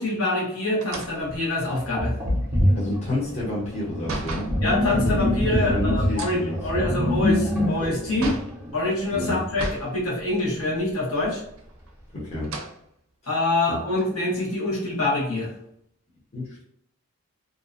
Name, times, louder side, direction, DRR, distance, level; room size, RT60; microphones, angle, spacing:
voice 1, 0.0-2.1 4.6-8.4 8.7-11.4 13.3-15.5, left 2 dB, 70° left, -4 dB, 1.0 m, -25 dB
sound 1, 0.8-4.6 6.1-8.6 9.5-9.9 10.3-10.4 11.5-12.0 12.4-12.8 13.4-13.5 13.9-15.3, right 2 dB, 65° right, 0.5 m, -36 dB
Sink (filling or washing), 1.3-1.4 2.0-9.3, left 1 dB, 10° right, 0.6 m, -25 dB
voice 2, 2.7-4.5 5.6-6.6 9.1-9.4 12.1-12.5 13.7-13.8 16.3-16.6, left 1 dB, 30° left, -6 dB, 0.7 m, -30 dB
2.5 x 2.1 x 2.4 m, 0.71 s
head